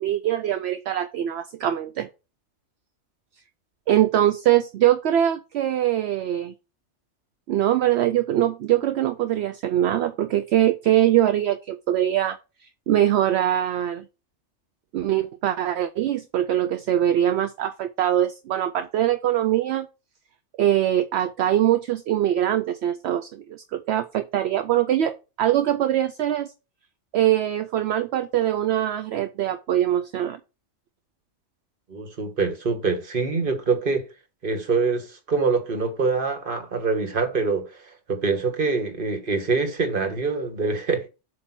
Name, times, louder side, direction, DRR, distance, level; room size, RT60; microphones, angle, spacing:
voice 1, 0.0-2.1 3.9-6.5 7.5-12.4 12.9-14.1 14.9-19.9 20.6-26.5 27.1-30.4, right 12 dB, 70° right, 0.8 m, -22 dB
voice 2, 31.9-34.0 34.4-37.7 38.1-41.1, right 4 dB, 50° right, 1.5 m, -24 dB
7.7 x 2.8 x 5.9 m
omnidirectional pair, 1.2 m